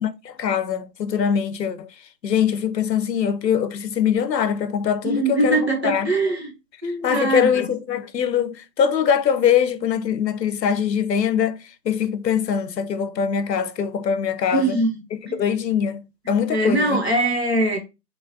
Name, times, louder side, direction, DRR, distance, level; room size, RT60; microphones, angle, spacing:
voice 1, 0.0-1.9 2.2-6.1 7.0-11.6 11.8-14.8 15.3-17.0, left 8 dB, 85° left, 0.6 m, -22 dB
voice 2, 5.0-6.5 6.8-7.7 14.5-15.0 15.3-15.4 16.5-17.8, right 2 dB, 40° right, 0.8 m, -22 dB
3.0 x 2.3 x 2.5 m
figure-of-eight pair, 175°, 49 cm